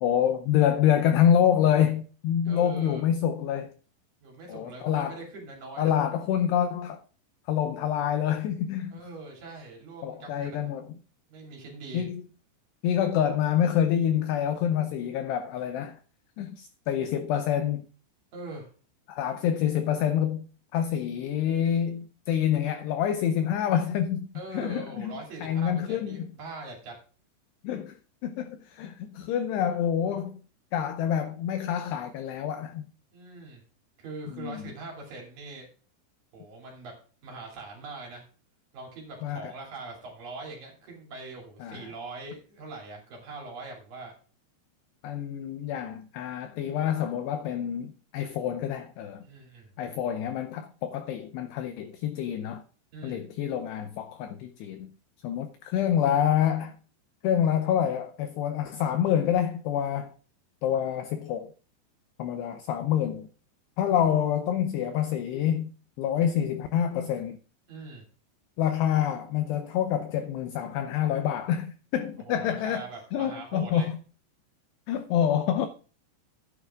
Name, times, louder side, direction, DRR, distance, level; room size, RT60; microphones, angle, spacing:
voice 1, 0.0-3.7 4.5-5.2 5.8-7.0 7.5-9.0 10.0-10.9 11.9-12.2 12.8-16.0 16.4-17.9 19.1-20.5 20.7-24.3 24.5-25.1 25.4-26.3 27.6-30.4 30.7-32.9 34.3-34.6 39.2-39.5 41.6-41.9 45.0-49.2 49.8-52.6 53.0-54.9 55.2-56.8 57.2-60.1 60.6-61.5 62.2-63.3 63.8-65.7 66.0-67.4 68.6-74.0 74.9-75.7, left 9 dB, 90° left, 2.4 m, -27 dB
voice 2, 2.5-3.0 4.2-5.9 8.9-10.7 11.3-12.1 18.3-18.7 24.3-27.0 33.1-33.6 34.0-35.7 36.3-36.9 37.2-38.2 38.7-44.1 49.2-49.7 52.9-53.2 67.7-68.0 72.3-73.9, right 3 dB, 50° right, 4.0 m, -42 dB
14.5 x 9.6 x 2.4 m
omnidirectional pair, 5.7 m